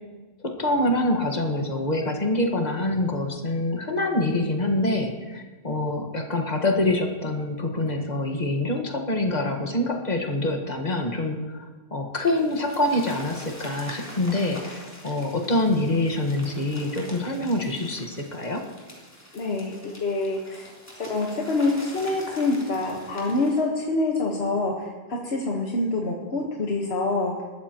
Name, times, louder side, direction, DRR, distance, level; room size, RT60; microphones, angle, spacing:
voice 1, 0.4-11.6 11.9-14.6 15.0-18.6, left 1 dB, 45° left, 3 dB, 1.6 m, -25 dB
sound 1, 12.2-23.6, equal, 15° left, 3.5 m, -44 dB
voice 2, 19.3-20.7 20.9-27.3, left 2 dB, 85° left, -1 dB, 1.6 m, -26 dB
20.5 x 13.5 x 3.0 m, 1.4 s
omnidirectional pair, 1.0 m